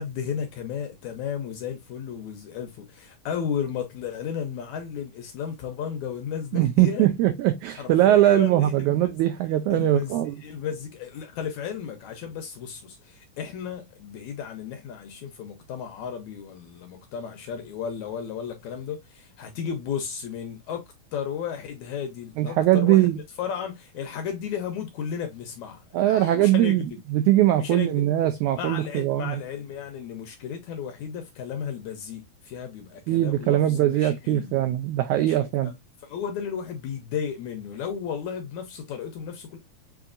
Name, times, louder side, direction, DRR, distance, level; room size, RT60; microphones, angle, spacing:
voice 1, 0.0-7.1 7.8-9.1 9.7-23.1 23.4-27.0 27.6-28.1 28.6-34.5 35.2-35.7 36.0-39.6, left 7 dB, 75° left, 1.8 m, -34 dB
voice 2, 6.5-10.4 22.4-23.2 25.9-29.4 33.1-35.7, right 14 dB, 85° right, 1.7 m, -21 dB
6.9 x 2.8 x 2.5 m
omnidirectional pair, 4.0 m